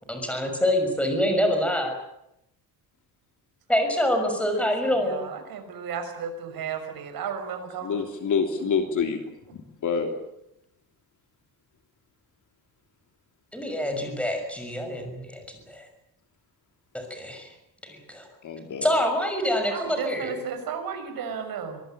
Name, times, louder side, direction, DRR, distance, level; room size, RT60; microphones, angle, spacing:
voice 1, 0.1-1.9 3.7-5.2 13.5-15.9 16.9-17.5 17.8-18.3 18.8-20.3, equal, 5° left, 5 dB, 6.3 m, -26 dB
voice 2, 4.6-8.0 19.7-21.8, right 6 dB, 70° right, 6 dB, 6.2 m, -34 dB
voice 3, 7.8-9.2 9.5-10.1 18.4-18.9, left 6 dB, 55° left, 5 dB, 3.1 m, -27 dB
24.5 x 19.5 x 8.9 m, 0.81 s
cardioid pair, 150°, 37 cm